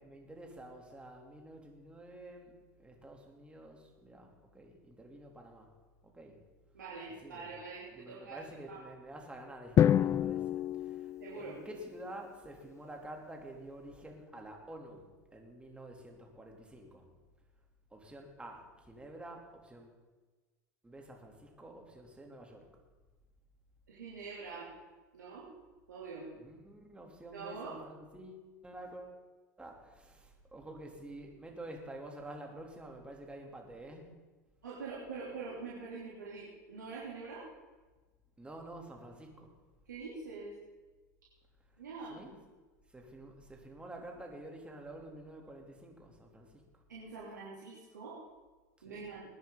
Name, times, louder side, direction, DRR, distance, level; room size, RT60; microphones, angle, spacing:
voice 1, 0.0-5.7 6.0-6.4 7.2-7.5 7.9-15.1 15.3-17.1 17.9-20.0 20.8-22.7 26.3-29.2 29.6-34.1 38.4-39.5 42.1-42.4 42.9-46.6 48.8-49.1, right 1 dB, 10° right, 1 dB, 3.2 m, -49 dB
voice 2, 6.7-8.4 8.7-8.8 11.2-11.6 23.9-24.7 25.1-25.5 25.9-26.3 27.3-27.8 34.6-37.5 39.9-40.5 41.8-42.2 46.9-48.2 48.8-49.2, right 4 dB, 90° right, -7 dB, 3.2 m, -44 dB
Drum, 9.8-11.9, left 10 dB, 30° left, 0.3 m, -28 dB
20.5 x 10.0 x 4.0 m, 1.3 s
hypercardioid pair, 85°, 10 cm